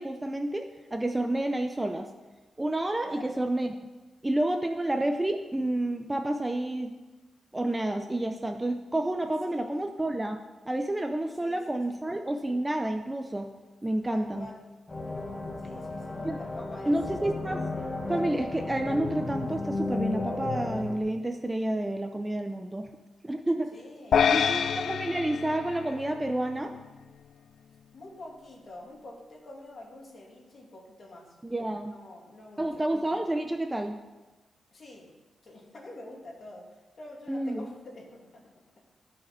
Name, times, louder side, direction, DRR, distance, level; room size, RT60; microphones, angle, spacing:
voice 1, 0.0-2.1 2.6-3.7 4.2-7.0 7.5-10.4 10.7-13.5 13.8-14.5 16.2-16.4 16.9-17.6 18.1-22.9 23.2-23.7 24.3-24.6 24.9-26.7 31.4-31.9 32.6-34.0 37.3-37.7, right 1 dB, 10° right, 6 dB, 0.5 m, -29 dB
voice 2, 3.0-3.3 9.2-9.7 11.4-12.0 14.1-14.6 15.6-16.9 23.7-24.7 27.9-31.4 31.8-32.9 34.7-35.1 35.4-38.4, left 2 dB, 40° left, -1 dB, 2.5 m, -47 dB
sound 1, 14.9-21.0, left 2 dB, 20° left, 1.1 m, -33 dB
sound 2, 24.1-26.6, left 7 dB, 65° left, 0.4 m, -27 dB
14.0 x 5.7 x 7.1 m, 1.2 s
wide cardioid pair, 175°, 0 cm